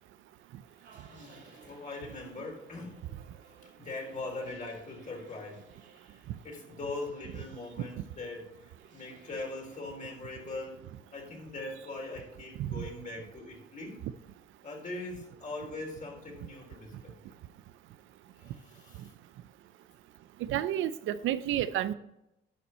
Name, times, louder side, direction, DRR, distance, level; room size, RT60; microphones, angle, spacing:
sound 1, 0.6-9.8, right 4 dB, 65° right, 2.4 m, -60 dB
voice 1, 0.9-3.0 3.6-5.6 6.1-10.8 11.1-14.0 14.6-17.2 18.3-19.1, left 2 dB, 40° left, 1 dB, 3.6 m, -41 dB
voice 2, 20.4-21.9, right 11 dB, 85° right, 13 dB, 0.6 m, -30 dB
11.0 x 5.9 x 4.3 m, 0.86 s
cardioid pair, 90°, 20 cm